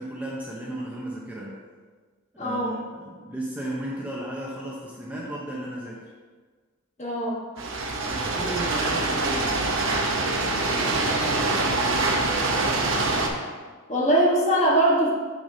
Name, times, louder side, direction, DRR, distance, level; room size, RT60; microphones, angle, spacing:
voice 1, 0.0-1.6 2.4-6.1 8.0-9.6, right 1 dB, 5° right, -5 dB, 0.6 m, -34 dB
voice 2, 2.4-2.8 7.0-7.4 13.9-15.1, right 1 dB, 35° left, -4 dB, 1.3 m, -21 dB
sound 1, 7.6-13.3, right 2 dB, 60° right, 0.7 m, -24 dB
6.6 x 6.2 x 2.7 m, 1.5 s
head